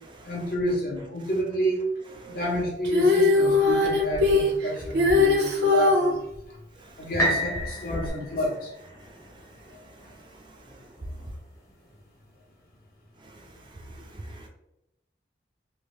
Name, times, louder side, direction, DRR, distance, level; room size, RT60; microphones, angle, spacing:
voice 1, 0.2-1.8 2.3-6.6 7.0-8.7 9.7-9.8, equal, 55° left, -1 dB, 0.9 m, -29 dB
Female singing, 2.8-6.1 8.1-8.2, left 3 dB, 85° right, 0.8 m, -20 dB
sound 1, 7.2-11.1 11.7-11.8, right 1 dB, 15° left, 0.7 m, -32 dB
voice 2, 13.8-14.5, right 2 dB, 25° right, 1 dB, 0.4 m, -44 dB
3.2 x 2.6 x 3.0 m, 0.88 s
head